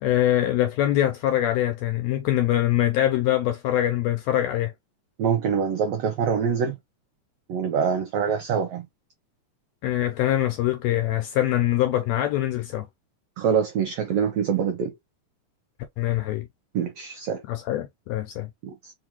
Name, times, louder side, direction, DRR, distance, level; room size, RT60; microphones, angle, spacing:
voice 1, 0.0-4.7 9.8-12.9 16.0-16.5 17.5-18.5, left 13 dB, 85° left, 1.5 m, -23 dB
voice 2, 5.2-6.8 7.5-8.8 13.4-14.9 16.7-17.4 18.6-18.9, right 7 dB, 85° right, 1.4 m, -25 dB
4.7 x 2.4 x 2.8 m
omnidirectional pair, 3.6 m